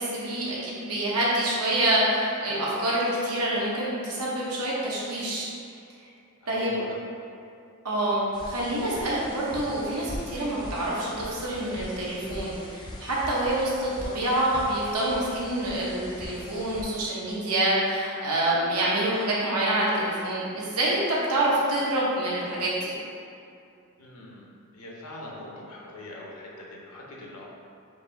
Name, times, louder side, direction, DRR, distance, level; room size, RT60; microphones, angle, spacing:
voice 1, 0.0-5.5 6.5-6.8 7.8-22.9, right 1 dB, 90° right, -6 dB, 1.0 m, -27 dB
voice 2, 6.4-7.0 8.0-8.2 24.0-24.5 24.7-27.4, left 1 dB, 75° left, -3 dB, 0.8 m, -42 dB
sound 1, 8.3-16.8, left 1 dB, 20° left, 0.4 m, -41 dB
4.6 x 2.6 x 3.4 m, 2.5 s
head